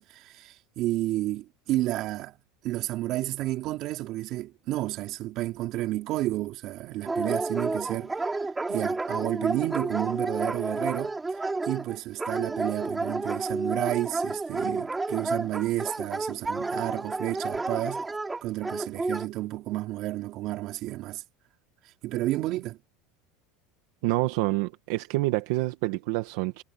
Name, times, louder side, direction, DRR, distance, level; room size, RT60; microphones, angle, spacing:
voice 1, 0.0-2.3 2.6-8.2 8.7-11.1 11.7-18.1 18.4-21.2 22.0-22.8, right 16 dB, 40° right, 4.6 m, -31 dB
Dog, 7.1-19.3, right 3 dB, 10° right, 5.1 m, -31 dB
voice 2, 24.0-26.6, right 19 dB, 65° right, 1.7 m, -27 dB
supercardioid pair, 165°, 0 cm